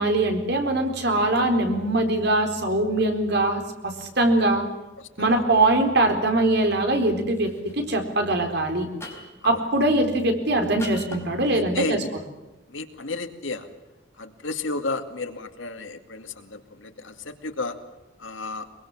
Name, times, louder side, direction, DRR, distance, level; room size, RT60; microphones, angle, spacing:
voice 1, 0.0-4.6 5.2-8.9 9.4-12.0, right 2 dB, 60° right, 5 dB, 4.2 m, -22 dB
voice 2, 5.0-5.3 9.4-9.6 11.5-12.1 12.7-13.7 14.2-17.8 18.2-18.6, left 3 dB, 85° left, 7 dB, 2.4 m, -32 dB
sound 1, 6.9-7.1 7.4-7.7 9.0-9.5 10.8-11.3, left 2 dB, 15° left, 4.8 m, -39 dB
23.5 x 23.0 x 7.3 m, 1.0 s
head